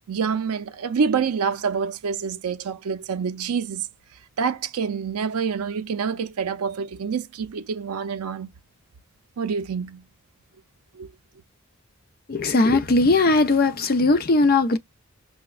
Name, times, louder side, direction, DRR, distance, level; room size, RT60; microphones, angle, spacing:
voice 1, 0.1-3.9 4.4-8.5 9.4-10.0 10.9-11.1, right 6 dB, 85° right, 0.4 m, -27 dB
voice 2, 12.3-14.8, left 3 dB, 45° left, 0.5 m, -19 dB
5.8 x 2.1 x 2.3 m
head